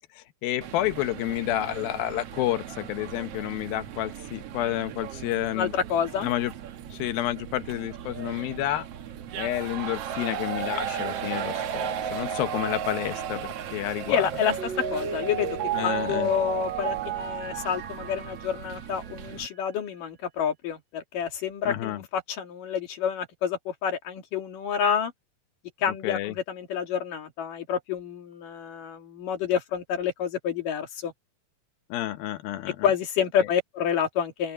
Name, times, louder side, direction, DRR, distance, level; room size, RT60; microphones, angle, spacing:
voice 1, 0.1-5.7 6.2-6.5 6.9-8.9 9.3-14.3 15.7-16.3 21.6-22.0 26.0-26.3 31.9-32.9 33.4-33.5, left 14 dB, 80° left, 2.8 m, -30 dB
sound 1, 0.6-19.5, right 8 dB, 70° right, 1.5 m, -36 dB
voice 2, 5.5-6.3 14.1-14.5 14.9-15.6 15.8-25.1 25.8-31.1 32.8-34.5, left 8 dB, 65° left, 3.9 m, -28 dB
Mallet percussion, 14.3-19.3, right 8 dB, 90° right, 1.0 m, -33 dB
omnidirectional pair, 4.2 m